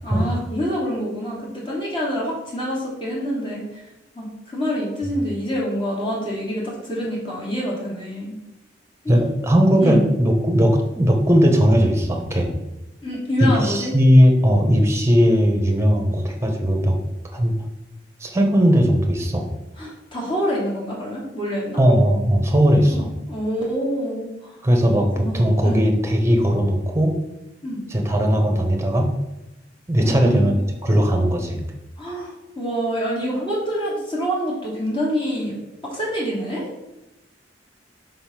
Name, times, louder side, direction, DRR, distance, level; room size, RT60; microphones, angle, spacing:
voice 1, 0.0-3.8 4.1-8.3 9.0-9.3 9.8-10.0 13.0-13.9 19.8-21.8 22.9-24.6 24.9-25.8 27.6-27.8 30.0-30.5 32.0-35.5 35.8-36.7, equal, 30° left, -5 dB, 3.0 m, -26 dB
voice 2, 9.1-12.5 13.4-17.0 17.3-17.5 18.2-19.5 21.8-23.1 24.6-27.2 27.9-29.1 29.9-30.5 30.8-31.6, equal, 15° right, 3 dB, 1.2 m, -18 dB
5.5 x 5.5 x 5.9 m, 0.93 s
head